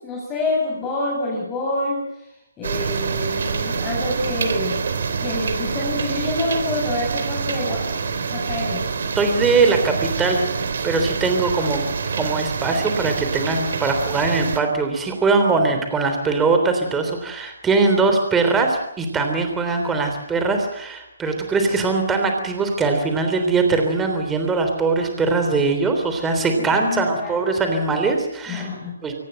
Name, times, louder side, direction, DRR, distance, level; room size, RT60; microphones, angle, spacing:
voice 1, 0.0-4.9 5.2-7.9 8.3-8.9 15.5-15.6 26.8-27.3 28.5-29.0, left 2 dB, 15° left, -3 dB, 7.4 m, -27 dB
sound 1, 2.6-14.6, right 5 dB, 60° right, 3.6 m, -26 dB
voice 2, 9.1-10.4 10.8-11.9 12.2-28.7 29.0-29.1, right 3 dB, 10° right, 5 dB, 3.4 m, -21 dB
24.0 x 19.0 x 7.8 m, 0.81 s
hypercardioid pair, 160°, 0 cm